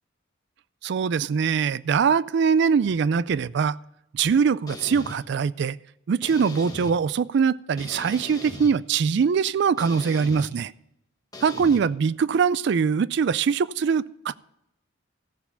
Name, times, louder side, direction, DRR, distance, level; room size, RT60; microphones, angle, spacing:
voice 1, 0.8-3.8 4.1-5.8 6.1-10.7 11.4-14.4, right 6 dB, 60° right, 0.3 m, -22 dB
sound 1, 4.7-5.2 6.2-6.9 7.8-8.7 9.8-10.5 11.3-11.8, left 2 dB, 20° left, 1.2 m, -39 dB
14.5 x 7.0 x 5.6 m
head